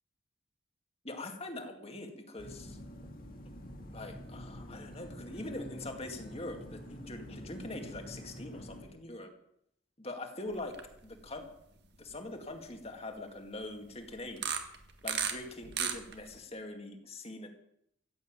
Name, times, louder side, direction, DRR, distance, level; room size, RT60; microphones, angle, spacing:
voice 1, 1.0-2.8 3.9-9.3 10.0-10.7 11.0-11.4 12.0-14.6 15.0-17.5, left 2 dB, 30° left, 4 dB, 2.1 m, -43 dB
sound 1, 2.4-8.8, equal, 45° left, 2.3 m, -47 dB
sound 2, 10.6-10.9 11.3-11.4 12.1-12.2 14.3-15.3 15.6-16.4, right 8 dB, 55° right, 1.7 m, -33 dB
15.0 x 8.3 x 9.0 m, 0.76 s
head